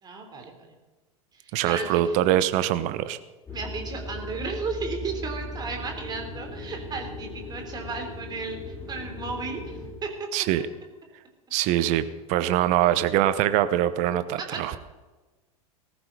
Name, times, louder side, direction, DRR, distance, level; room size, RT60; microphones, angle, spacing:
voice 1, 0.0-0.7 1.4-2.0 3.5-10.3 14.4-14.6, right 4 dB, 20° right, 3 dB, 3.5 m, -34 dB
voice 2, 1.5-3.2 10.3-10.6 11.5-14.7, right 12 dB, 40° right, 13 dB, 0.9 m, -23 dB
sound 1, 3.5-9.9, left 1 dB, 10° left, 4.2 m, -38 dB
19.0 x 14.0 x 4.1 m, 1.2 s
figure-of-eight pair, 90°, 19 cm